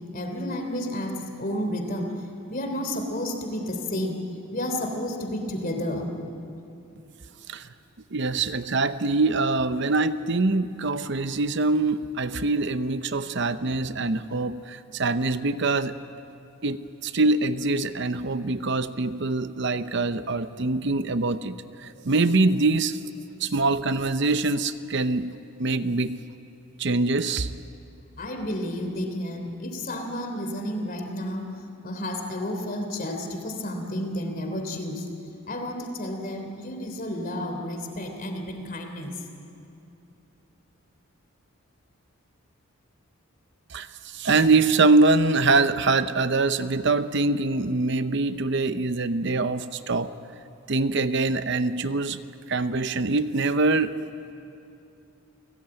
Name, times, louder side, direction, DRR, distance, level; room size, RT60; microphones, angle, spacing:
voice 1, 0.1-2.2 2.5-4.2 4.5-6.1 28.2-35.1 35.5-39.2, left 1 dB, 40° left, 4 dB, 3.2 m, -31 dB
voice 2, 8.1-16.0 16.6-23.0 23.4-26.2 26.8-27.5 43.7-50.1 50.7-52.2 52.5-54.0, right 3 dB, 55° right, 12 dB, 0.7 m, -24 dB
30.0 x 18.0 x 8.9 m, 2.8 s
head